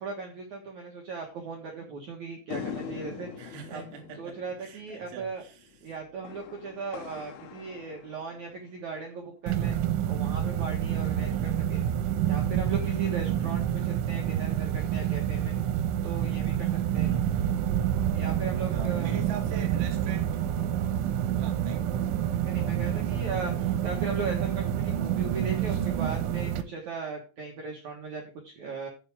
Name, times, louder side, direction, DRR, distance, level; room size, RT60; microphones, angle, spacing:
voice 1, 0.0-3.8 4.2-5.4 5.8-9.8 10.1-11.8 12.2-15.6 16.0-17.2 18.1-19.6 22.4-28.9, right 4 dB, 65° right, 1 dB, 1.9 m, -38 dB
sound 1, 2.5-9.0, left 7 dB, 85° left, 4.0 m, -43 dB
voice 2, 3.4-5.6 11.2-11.6 13.3-13.5 16.9-17.6 18.7-20.4 21.4-21.9, right 4 dB, 40° right, 2 dB, 2.6 m, -43 dB
sound 2, 9.5-26.6, right 10 dB, 90° right, 3.3 m, -28 dB
14.0 x 5.9 x 3.5 m, 0.35 s
omnidirectional pair, 5.6 m